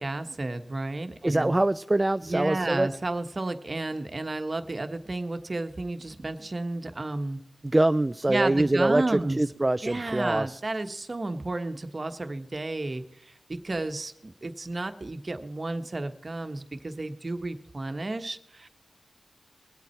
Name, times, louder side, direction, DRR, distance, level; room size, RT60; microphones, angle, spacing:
voice 1, 0.0-1.5 2.2-7.4 8.3-9.4 9.8-18.7, right 2 dB, 45° right, 8 dB, 1.3 m, -32 dB
voice 2, 1.2-2.9 7.6-10.6, right 2 dB, 25° right, 11 dB, 0.4 m, -24 dB
22.0 x 8.4 x 4.5 m, 0.76 s
cardioid pair, 45°, 0 cm